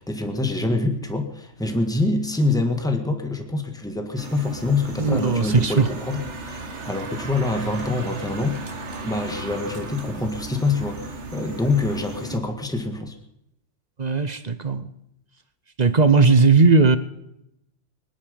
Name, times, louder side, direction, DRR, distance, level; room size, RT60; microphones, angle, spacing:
voice 1, 0.0-13.1, left 2 dB, 5° left, 5 dB, 1.7 m, -25 dB
sound 1, 4.2-12.4, right 3 dB, 70° right, 1.8 m, -35 dB
voice 2, 5.0-5.9 14.0-14.9 15.8-17.0, right 4 dB, 40° right, 12 dB, 0.9 m, -17 dB
24.0 x 10.5 x 5.3 m, 0.79 s
omnidirectional pair, 1.3 m